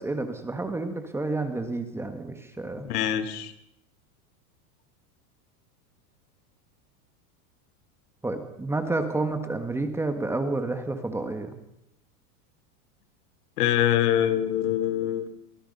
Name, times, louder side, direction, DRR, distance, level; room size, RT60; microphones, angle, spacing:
voice 1, 0.0-2.9 8.2-11.5, right 2 dB, 5° right, 7 dB, 1.5 m, -30 dB
voice 2, 2.8-3.5 13.6-15.3, left 11 dB, 70° left, 11 dB, 3.2 m, -24 dB
29.5 x 24.5 x 5.5 m, 0.76 s
supercardioid pair, 170°, 47 cm